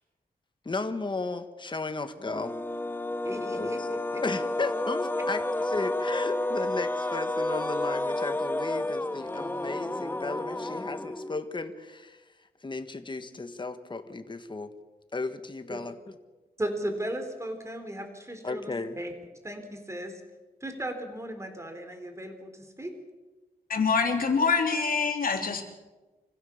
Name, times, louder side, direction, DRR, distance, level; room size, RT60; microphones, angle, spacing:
voice 1, 0.6-2.6 3.5-3.9 4.2-12.2 12.6-14.7 15.1-16.0 18.4-19.0, left 3 dB, 30° left, 8 dB, 1.6 m, -35 dB
sound 1, 2.2-11.5, left 2 dB, 15° left, 0.8 m, -31 dB
voice 2, 3.2-4.2 15.7-15.8 16.6-19.1 19.4-20.2 20.6-22.9, right 1 dB, 20° right, 6 dB, 3.9 m, -36 dB
voice 3, 23.7-25.6, left 5 dB, 65° left, 3 dB, 3.3 m, -25 dB
25.5 x 15.5 x 7.3 m, 1.2 s
wide cardioid pair, 90°, 16 cm